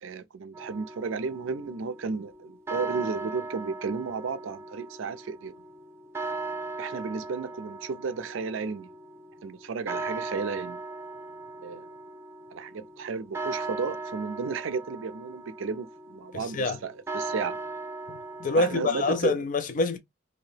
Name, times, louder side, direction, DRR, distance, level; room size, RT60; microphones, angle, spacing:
voice 1, 0.0-5.5 6.8-8.9 9.4-10.8 11.6-11.9 12.5-17.6 18.6-19.3, right 5 dB, 80° right, 0.4 m, -33 dB
sound 1, 0.5-19.2, right 3 dB, 15° right, 0.5 m, -38 dB
voice 2, 16.3-16.8 18.1-20.0, left 3 dB, 40° left, 0.4 m, -26 dB
2.9 x 2.7 x 3.2 m
head